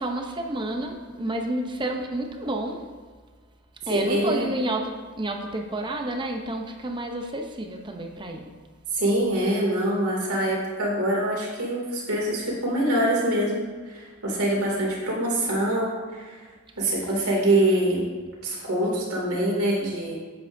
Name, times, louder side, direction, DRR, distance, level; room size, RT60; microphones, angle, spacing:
voice 1, 0.0-2.9 3.9-8.5, right 1 dB, 20° right, 3 dB, 0.7 m, -30 dB
voice 2, 3.9-4.5 8.9-16.4 16.8-18.1 18.4-20.1, right 1 dB, 85° right, -3 dB, 2.6 m, -24 dB
9.6 x 8.1 x 2.7 m, 1.5 s
head